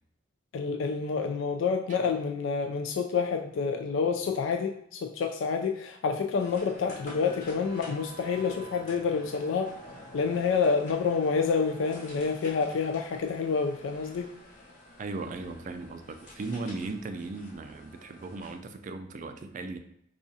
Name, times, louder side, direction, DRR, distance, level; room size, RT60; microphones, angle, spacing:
voice 1, 0.5-9.7 10.1-14.3, left 5 dB, 75° left, 4 dB, 0.3 m, -28 dB
sound 1, 6.4-18.6, equal, 40° left, 1.1 m, -48 dB
voice 2, 15.0-19.8, right 3 dB, 40° right, 8 dB, 0.3 m, -37 dB
4.8 x 2.4 x 2.7 m, 0.75 s
head